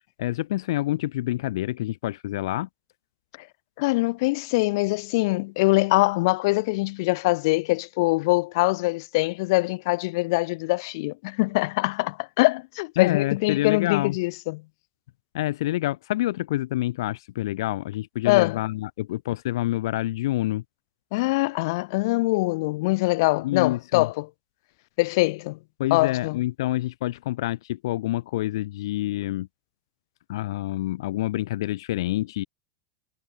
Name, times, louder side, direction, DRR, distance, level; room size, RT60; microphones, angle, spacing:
voice 1, 0.2-2.7 13.0-14.2 15.3-20.6 23.4-24.1 25.8-29.5 30.3-32.4, left 15 dB, 80° left, 0.8 m, -27 dB
voice 2, 3.8-14.6 18.2-18.6 21.1-24.3 25.0-25.6 25.9-26.4, left 23 dB, 60° left, 1.0 m, -23 dB
supercardioid pair, 155°, 2 cm